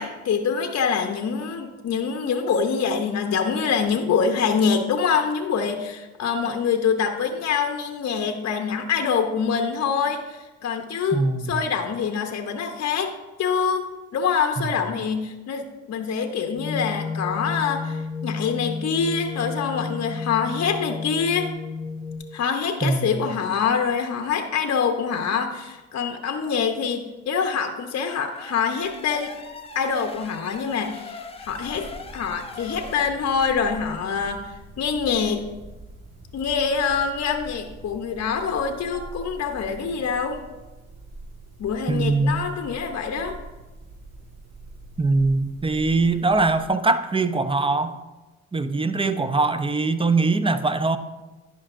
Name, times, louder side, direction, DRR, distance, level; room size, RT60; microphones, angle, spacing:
voice 1, 0.0-11.2 11.5-13.1 13.4-13.9 14.1-21.5 22.3-29.3 29.7-31.9 32.1-35.4 36.3-40.4 41.6-43.4, left 6 dB, 50° left, 5 dB, 0.7 m, -25 dB
voice 2, 11.1-11.5 22.8-23.3 41.9-42.5 45.0-48.0 48.5-51.0, right 3 dB, 15° right, 11 dB, 0.5 m, -22 dB
sound 1, 16.5-22.2, left 4 dB, 90° right, 1.9 m, -32 dB
sound 2, 28.2-33.1, left 3 dB, 15° left, 0.7 m, -41 dB
sound 3, 31.4-46.7, right 2 dB, 50° right, 2.3 m, -44 dB
11.0 x 5.2 x 2.5 m, 1.1 s
hypercardioid pair, 50°, 34 cm